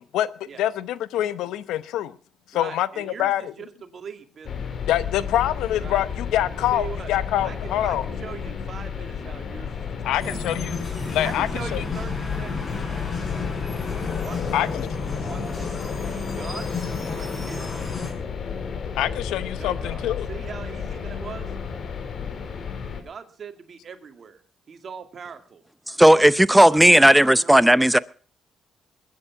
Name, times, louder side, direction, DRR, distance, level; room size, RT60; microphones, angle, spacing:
voice 1, 0.6-2.2 2.5-3.5 4.9-8.0 10.0-10.8 11.1-11.9 14.5-14.9 18.9-20.3, left 12 dB, 90° left, 0.9 m, -25 dB
voice 2, 2.5-4.7 5.8-6.0 6.7-7.1 7.4-10.4 11.2-13.4 14.2-14.7 15.2-15.7 16.4-16.7 17.1-17.7 19.6-21.5 23.0-24.4 24.7-25.6 26.0-27.8, right 6 dB, 50° right, 2.3 m, -40 dB
sound 1, 4.4-23.0, left 6 dB, 55° left, 2.8 m, -32 dB
sound 2, 10.2-18.1, left 3 dB, 35° left, 6.5 m, -32 dB
voice 3, 25.9-28.0, right 1 dB, 5° right, 0.7 m, -14 dB
21.5 x 9.8 x 5.8 m
cardioid pair, 90°, 0 cm